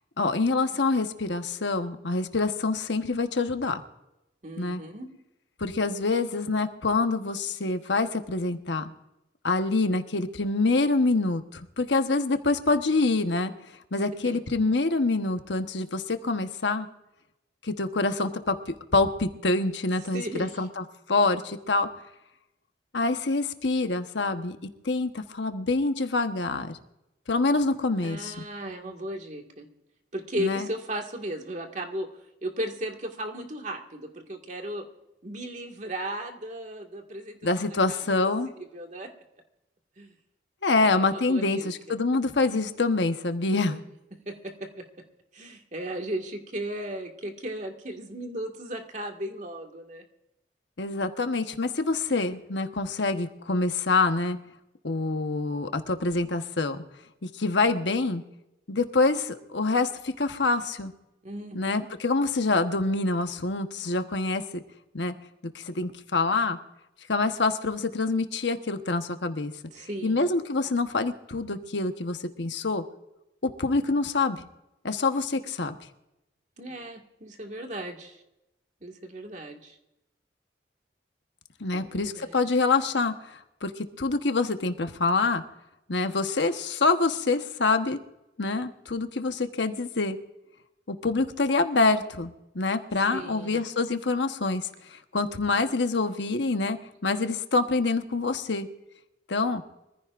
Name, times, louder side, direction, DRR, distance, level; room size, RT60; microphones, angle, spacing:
voice 1, 0.2-3.8 4.6-4.8 5.6-8.9 9.4-13.5 13.9-16.9 17.6-18.6 18.9-21.9 22.9-24.6 24.8-26.8 27.3-28.3 30.4-30.7 37.4-38.5 40.6-43.8 50.8-54.4 54.8-56.8 57.2-58.2 58.7-60.9 61.5-64.6 64.9-65.1 65.5-66.6 67.1-69.5 70.0-72.8 73.4-74.4 74.8-75.7 81.6-85.4 85.9-88.0 88.4-90.2 90.9-98.7 99.3-99.6, left 3 dB, 85° left, 7 dB, 1.1 m, -26 dB
voice 2, 4.4-5.1 14.2-14.4 20.1-20.7 28.0-29.7 30.1-34.8 35.2-37.4 38.7-39.1 40.0-40.1 40.7-41.7 43.4-43.8 44.3-44.4 45.3-50.0 61.2-61.8 69.7-70.2 76.6-78.2 78.8-79.8 81.7-82.5 93.1-93.6, right 1 dB, 45° right, 3 dB, 1.9 m, -36 dB
25.0 x 15.0 x 2.5 m, 0.92 s
head